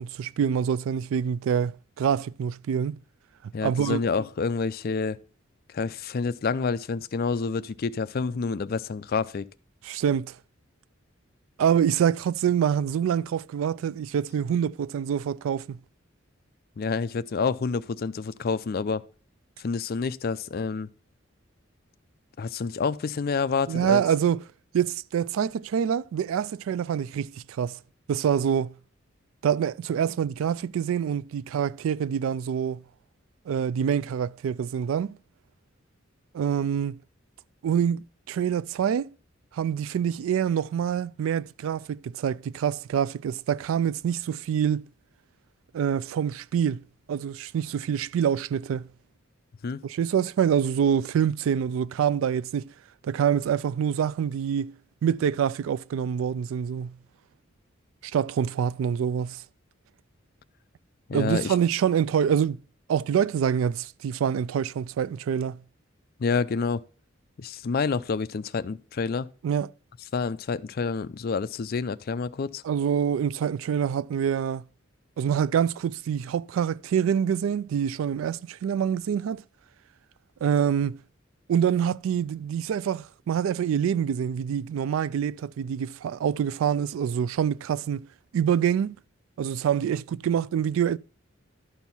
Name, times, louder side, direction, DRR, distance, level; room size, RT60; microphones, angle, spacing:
voice 1, 0.0-3.0 3.6-4.0 9.8-10.3 11.6-15.8 23.7-24.4 24.7-27.8 28.1-28.7 29.4-32.8 33.5-35.2 36.3-37.0 37.6-39.1 39.5-44.8 45.7-46.8 47.1-48.9 49.8-52.7 53.0-54.7 55.0-57.0 58.0-59.4 61.1-62.6 62.9-65.6 69.4-69.7 72.6-74.6 75.2-79.4 80.4-81.0 81.5-88.1 88.3-89.0 89.4-91.0, right 8 dB, 85° right, 0.3 m, -26 dB
voice 2, 3.5-5.2 5.7-9.4 16.8-19.0 19.6-20.9 22.4-24.0 49.6-49.8 61.1-61.5 66.2-66.8 67.4-69.3 70.1-72.6, left 4 dB, 50° left, 0.4 m, -28 dB
11.5 x 4.5 x 5.4 m
head